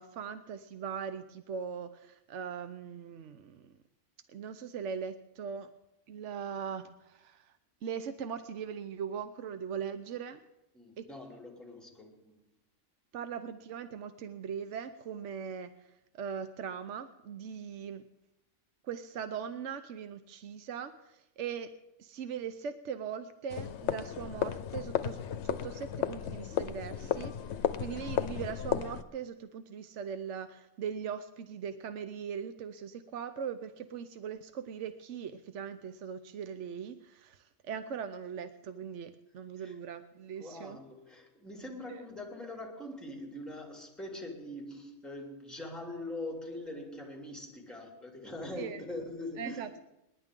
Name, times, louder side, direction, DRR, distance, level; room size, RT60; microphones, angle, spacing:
voice 1, 0.0-3.7 4.3-5.7 6.1-7.5 7.8-10.4 11.0-11.1 13.1-15.7 16.1-18.0 18.8-21.7 22.0-27.3 27.6-40.8 41.9-42.0 48.6-48.8 49.4-49.8, right 7 dB, 75° right, 10 dB, 1.1 m, -40 dB
voice 2, 10.7-12.5 39.6-39.8 40.4-49.8, left 1 dB, ahead, 1 dB, 2.9 m, -43 dB
sound 1, 23.5-29.0, left 9 dB, 70° left, 1.0 m, -34 dB
28.0 x 11.0 x 3.8 m, 0.89 s
omnidirectional pair, 1.3 m